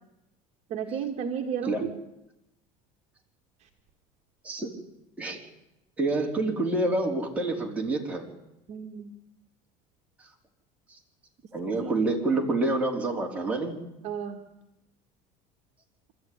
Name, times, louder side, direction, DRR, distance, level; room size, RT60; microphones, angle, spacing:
voice 1, 0.7-1.9 8.7-9.1 11.8-11.9 14.0-14.4, right 7 dB, 45° right, 3 dB, 1.9 m, -33 dB
voice 2, 6.0-8.3 11.5-13.8, right 2 dB, 10° right, -1 dB, 4.3 m, -27 dB
26.0 x 13.5 x 9.8 m, 0.92 s
cardioid pair, 150°, 16 cm